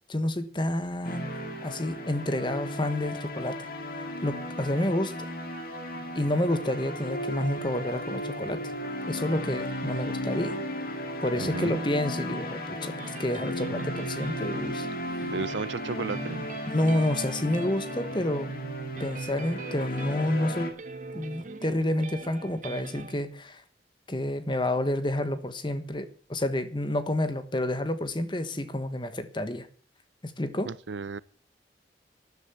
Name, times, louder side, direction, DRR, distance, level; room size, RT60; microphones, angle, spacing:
voice 1, 0.1-1.3 1.6-3.6 4.2-5.3 6.1-8.6 9.1-10.5 11.2-14.9 16.7-18.5 19.0-20.7 21.1-23.6 24.1-29.7 30.2-30.7, left 1 dB, 25° left, 1.3 m, -29 dB
sound 1, 1.0-20.7, equal, 50° left, 2.4 m, -35 dB
voice 2, 11.4-11.8 15.3-16.5 30.7-31.2, right 4 dB, 90° right, 0.6 m, -33 dB
sound 2, 13.0-23.2, right 2 dB, 45° right, 1.4 m, -42 dB
13.0 x 11.0 x 7.0 m
head